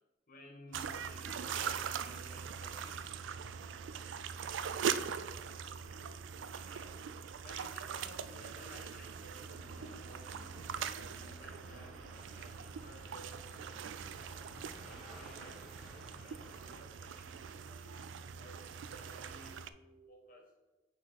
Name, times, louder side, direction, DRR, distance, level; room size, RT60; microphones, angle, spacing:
voice 1, 0.3-14.4 14.9-20.5, equal, 45° left, 2 dB, 1.1 m, -57 dB
sound 1, 0.7-19.7, right 7 dB, 80° right, 0.3 m, -42 dB
sound 2, 9.4-16.8, equal, ahead, 1.7 m, -56 dB
9.4 x 4.2 x 4.1 m, 1.1 s
head